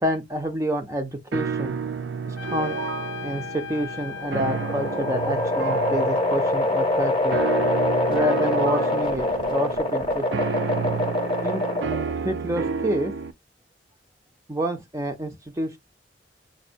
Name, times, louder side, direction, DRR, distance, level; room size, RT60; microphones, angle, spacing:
voice 1, 0.0-1.8 2.3-2.8 3.2-7.4 8.1-10.3 11.4-11.6 12.2-13.1 14.5-15.8, right 1 dB, 15° right, 0.4 m, -28 dB
sound 1, 1.3-13.3, right 5 dB, 85° right, 0.4 m, -31 dB
Trumpet, 2.4-7.1, left 8 dB, 90° left, 0.5 m, -39 dB
sound 2, 3.9-12.2, left 2 dB, 30° left, 0.7 m, -25 dB
5.1 x 2.0 x 2.5 m
head